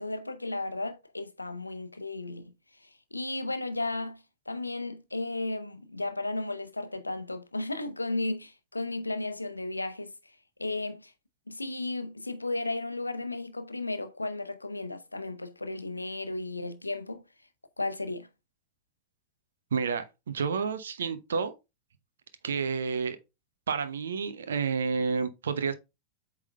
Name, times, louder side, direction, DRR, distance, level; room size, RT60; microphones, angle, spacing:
voice 1, 0.0-2.5 2.8-10.3 10.6-11.1 11.5-17.2 17.8-18.3, left 2 dB, 85° left, 0.7 m, -34 dB
voice 2, 19.7-21.5 22.4-23.2 23.7-25.7, right 5 dB, 65° right, 0.9 m, -30 dB
8.1 x 3.7 x 3.3 m
figure-of-eight pair, 90°, 0 cm